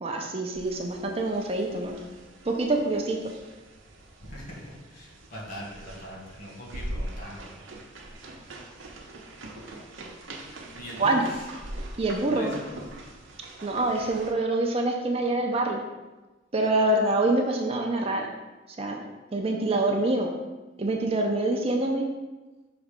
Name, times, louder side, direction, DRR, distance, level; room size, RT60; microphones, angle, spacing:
voice 1, 0.0-1.9 2.4-3.2 11.0-11.2 12.0-12.5 13.6-15.8 16.5-18.3 18.8-19.0 19.3-20.3 20.8-22.1, right 2 dB, 30° right, 2 dB, 0.5 m, -25 dB
sound 1, 0.5-14.3, right 1 dB, 70° right, 0.8 m, -42 dB
voice 2, 4.2-7.4 10.8-11.4 12.3-12.9, equal, 50° left, -4 dB, 1.9 m, -41 dB
5.9 x 3.2 x 5.1 m, 1.1 s
head